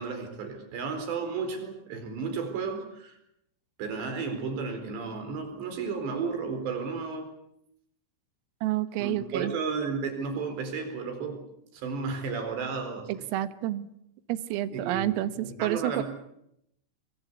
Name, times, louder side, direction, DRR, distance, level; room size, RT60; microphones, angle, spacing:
voice 1, 0.0-3.2 3.8-7.3 9.0-11.4 11.7-13.3 14.7-15.1 15.4-16.0, right 5 dB, 60° right, 7 dB, 6.4 m, -33 dB
voice 2, 8.6-9.6 13.1-13.9 14.3-16.0, right 14 dB, 90° right, 13 dB, 3.9 m, -29 dB
26.5 x 21.5 x 8.3 m, 0.78 s
omnidirectional pair, 5.8 m